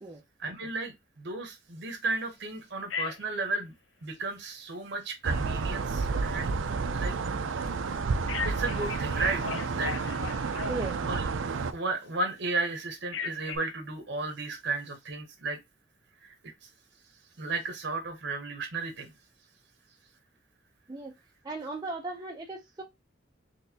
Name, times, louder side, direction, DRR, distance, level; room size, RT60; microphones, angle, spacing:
voice 1, 0.4-3.7 4.0-6.5 6.9-7.1 8.4-9.9 11.1-11.2 11.7-15.6 16.2-16.3 17.4-19.1, right 3 dB, 60° right, 0.8 m, -34 dB
Telephone, 2.9-3.4 8.3-11.2 13.1-13.6, left 5 dB, 80° left, 0.7 m, -37 dB
Ambience Berlin Rooftop, 5.2-11.7, right 4 dB, 85° right, 0.5 m, -30 dB
voice 2, 21.4-22.8, right 2 dB, 20° right, 0.5 m, -36 dB
4.2 x 3.2 x 2.7 m
head